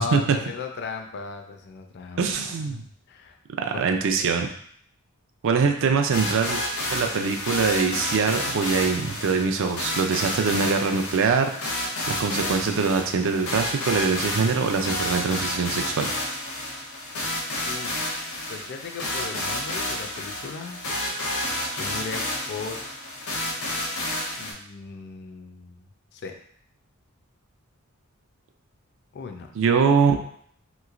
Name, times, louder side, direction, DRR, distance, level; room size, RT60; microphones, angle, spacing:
voice 1, 0.0-2.8 3.1-3.4 3.7-4.3 17.7-18.0 18.5-20.8 21.7-22.8 24.4-25.8 26.1-26.3 29.1-29.5, left 4 dB, 50° left, 5 dB, 0.4 m, -37 dB
voice 2, 2.2-2.8 3.6-4.5 5.4-6.6 6.9-11.8 12.1-16.1 29.5-30.2, right 5 dB, 60° right, 5 dB, 0.4 m, -23 dB
sound 1, 6.1-24.5, left 1 dB, 85° left, 0.8 m, -30 dB
3.0 x 3.0 x 2.4 m, 0.62 s
head